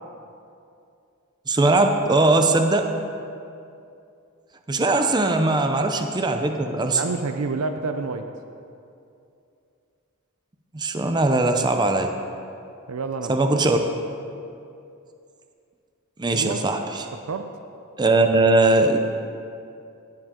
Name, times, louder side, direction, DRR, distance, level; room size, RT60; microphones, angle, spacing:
voice 1, 1.5-2.9 4.7-7.0 10.7-12.1 13.3-13.8 16.2-17.1 18.0-19.0, right 2 dB, 20° right, 5 dB, 0.5 m, -20 dB
voice 2, 6.9-8.3 12.9-13.4 16.3-16.6 17.3-17.5, right 4 dB, 80° right, 7 dB, 0.5 m, -29 dB
17.0 x 7.5 x 3.7 m, 2.6 s
head